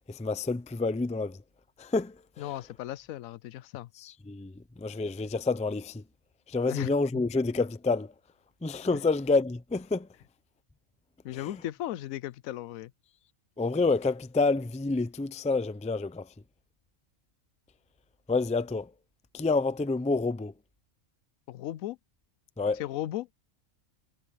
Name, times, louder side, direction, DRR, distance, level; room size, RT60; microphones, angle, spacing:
voice 1, 0.1-1.4 1.8-2.2 4.0-6.0 6.5-8.1 8.6-10.1 11.3-11.6 13.6-16.3 18.3-18.9 19.3-20.5 22.6-22.8, left 3 dB, 10° left, 0.3 m, -28 dB
voice 2, 2.4-3.9 6.7-6.9 11.2-12.9 21.5-22.0 22.8-23.3, left 13 dB, 85° left, 1.0 m, -36 dB
omnidirectional pair, 1.4 m